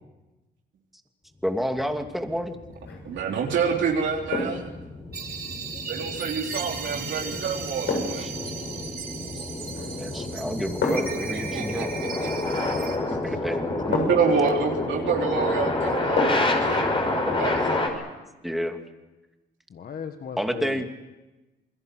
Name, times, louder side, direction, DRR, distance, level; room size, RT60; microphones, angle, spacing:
voice 1, 1.4-2.6 8.2-8.3 9.9-11.9 13.2-14.2 18.4-18.8 20.4-20.8, equal, ahead, 4 dB, 2.7 m, -29 dB
sound 1, 1.8-17.9, left 2 dB, 25° left, 5.5 m, -29 dB
sound 2, 2.7-3.1 4.3-4.7 6.8-7.0 7.9-8.3 9.7-10.1 10.8-11.3 12.9-13.0 13.9-14.4 16.2-16.6 17.0-17.1, left 3 dB, 65° left, 7.3 m, -29 dB
voice 2, 3.0-4.7 5.9-8.3 11.1-11.8 12.2-12.3 13.7-17.9, right 6 dB, 70° right, 0 dB, 3.6 m, -27 dB
sound 3, 5.1-13.0, right 6 dB, 50° right, 4.2 m, -37 dB
voice 3, 19.7-20.8, left 7 dB, 50° left, 7 dB, 1.5 m, -37 dB
28.0 x 21.0 x 7.9 m, 1.1 s
cardioid pair, 90°, 20 cm